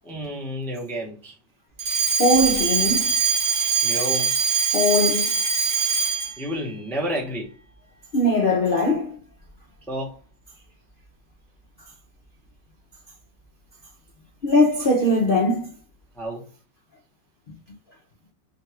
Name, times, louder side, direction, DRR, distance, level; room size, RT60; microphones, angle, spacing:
voice 1, 0.0-1.3 3.8-4.3 6.4-7.5 9.9-10.2 16.1-16.5, equal, 5° left, 0.4 m, -30 dB
Alarm, 1.8-6.4, right 5 dB, 45° right, 0.6 m, -22 dB
voice 2, 2.2-3.1 4.7-5.4 8.1-9.2 14.4-15.7, left 1 dB, 80° left, 0.4 m, -20 dB
3.8 x 2.3 x 2.7 m
omnidirectional pair, 2.0 m